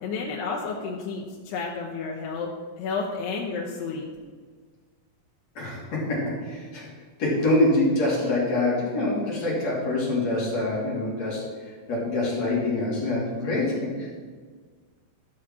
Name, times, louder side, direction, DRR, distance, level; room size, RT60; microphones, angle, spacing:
voice 1, 0.0-2.5 2.8-4.1, left 4 dB, 85° left, -2 dB, 3.2 m, -31 dB
voice 2, 5.6-6.9 7.2-11.4 11.9-13.9, left 2 dB, 45° left, -5 dB, 4.0 m, -25 dB
13.0 x 6.2 x 6.2 m, 1.6 s
omnidirectional pair, 4.7 m